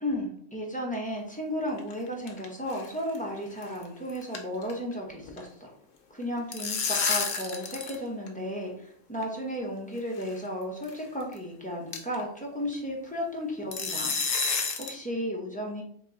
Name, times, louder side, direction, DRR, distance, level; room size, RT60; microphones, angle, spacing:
voice 1, 0.0-5.7 6.1-14.2 14.5-15.8, equal, 10° left, -2 dB, 0.7 m, -34 dB
sound 1, 1.7-2.5 2.7-2.9 3.2-3.3 3.6-4.9 5.2-5.4 6.2-8.0 8.3-8.4 9.2-9.3 10.2-10.4 10.8-10.9 11.3-11.4 11.9-12.2 13.7-15.0, left 5 dB, 55° left, 0.7 m, -30 dB
3.8 x 2.9 x 3.8 m, 0.64 s
omnidirectional pair, 1.3 m